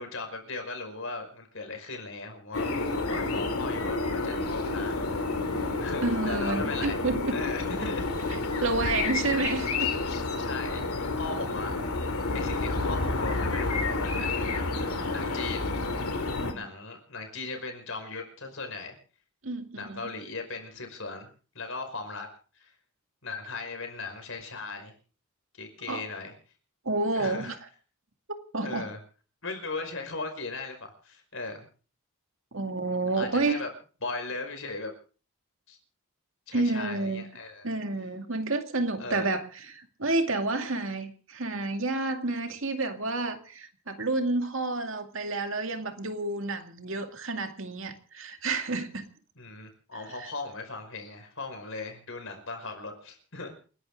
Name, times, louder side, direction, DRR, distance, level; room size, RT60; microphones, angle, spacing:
voice 1, 0.0-7.0 7.3-8.2 8.7-8.8 10.4-10.8 11.2-11.7 12.3-15.7 16.5-19.0 19.8-21.3 21.5-22.3 22.5-22.7 23.2-24.9 25.5-26.3 27.1-27.6 28.6-29.0 29.4-30.8 31.0-31.7 33.1-33.7 34.0-34.9 35.7-35.8 36.5-37.7 39.0-39.3 49.4-53.5, left 3 dB, 65° left, 5 dB, 5.3 m, -38 dB
sound 1, 2.5-16.5, left 3 dB, 85° left, 2.5 m, -30 dB
voice 2, 6.0-7.4 8.6-9.9 16.4-16.7 19.4-20.0 25.9-26.0 26.8-27.6 28.5-28.9 32.5-33.6 36.5-37.2 37.6-49.0 50.2-50.3, right 2 dB, 65° right, 6 dB, 2.3 m, -30 dB
29.5 x 11.5 x 3.8 m, 0.39 s
head